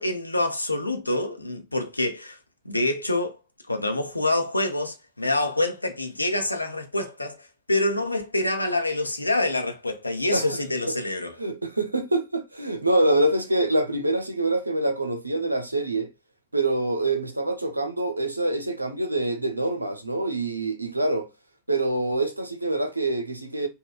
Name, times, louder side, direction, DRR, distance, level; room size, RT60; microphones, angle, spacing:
voice 1, 0.0-2.4 2.6-3.4 3.7-11.4, left 2 dB, 85° left, 0.6 m, -26 dB
voice 2, 11.4-16.1 16.5-21.3 21.7-23.7, right 2 dB, 85° right, 0.7 m, -25 dB
5.2 x 2.2 x 2.3 m
figure-of-eight pair, 90°, 0 cm